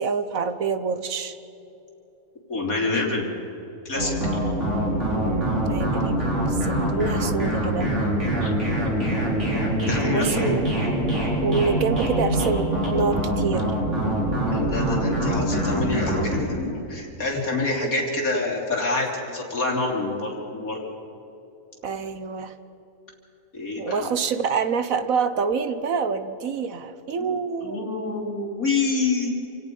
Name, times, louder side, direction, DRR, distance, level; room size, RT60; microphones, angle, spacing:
voice 1, 0.0-1.4 5.1-7.9 10.1-10.6 11.4-13.7 21.8-22.5 23.8-27.9, right 5 dB, 65° right, 11 dB, 1.4 m, -27 dB
voice 2, 2.5-3.3 3.9-4.1 8.4-8.5 9.8-10.3 14.5-20.8 23.5-24.1 27.2-27.4 27.6-29.3, left 3 dB, 70° left, 0 dB, 3.9 m, -27 dB
sound 1, 3.9-16.4, right 1 dB, 50° right, 4.9 m, -24 dB
28.0 x 17.5 x 5.4 m, 3.0 s
omnidirectional pair, 1.6 m